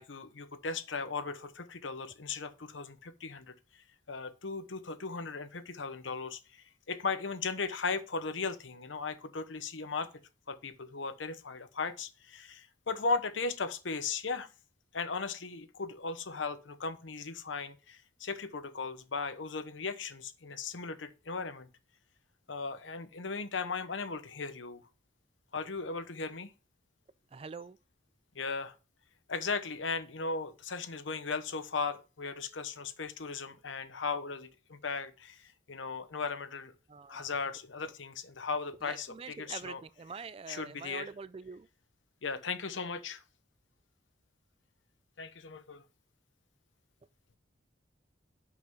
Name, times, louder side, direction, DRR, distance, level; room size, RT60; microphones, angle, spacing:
voice 1, 0.0-10.1 10.5-14.5 14.9-21.7 22.5-24.8 25.5-26.5 28.3-28.7 29.3-36.7 37.1-39.8 40.5-41.1 42.2-43.2 45.2-45.8, left 4 dB, 85° left, 1.0 m, -37 dB
voice 2, 27.3-27.8 36.9-37.3 38.8-41.7, right 5 dB, 30° right, 0.3 m, -45 dB
6.3 x 5.6 x 5.4 m
head